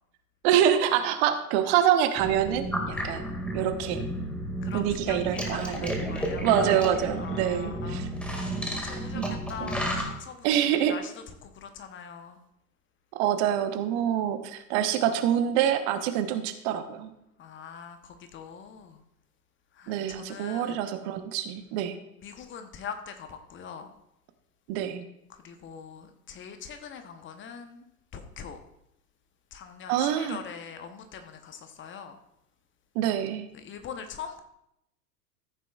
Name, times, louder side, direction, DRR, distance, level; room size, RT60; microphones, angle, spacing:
voice 1, 0.4-3.2 3.5-4.1 4.7-6.0 6.4-8.1 9.1-9.4 9.6-9.7 10.4-11.0 13.1-17.1 19.9-22.0 24.7-25.0 29.9-30.4 32.9-33.5, right 10 dB, 45° right, 9 dB, 1.0 m, -26 dB
sound 1, 2.2-10.1, equal, ahead, 2.0 m, -32 dB
voice 2, 4.6-6.5 7.2-8.1 8.4-9.2 9.5-11.1 11.4-12.4 17.4-19.0 19.7-20.9 22.2-23.9 25.3-28.6 29.5-32.2 33.5-34.4, left 7 dB, 25° left, 7 dB, 0.9 m, -43 dB
14.5 x 9.3 x 2.4 m, 0.81 s
figure-of-eight pair, 90°, 47 cm